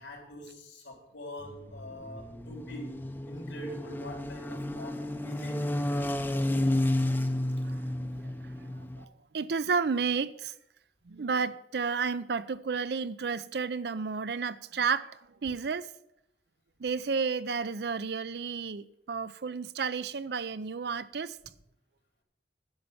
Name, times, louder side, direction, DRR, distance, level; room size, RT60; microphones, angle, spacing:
voice 1, 0.0-3.0 3.3-5.7, equal, 90° left, 3.5 m, -44 dB
sound 1, 1.4-9.0, left 1 dB, 10° left, 0.6 m, -32 dB
voice 2, 7.6-10.5 11.1-15.9 16.8-21.4, right 5 dB, 60° right, 0.5 m, -32 dB
10.5 x 6.5 x 7.0 m
head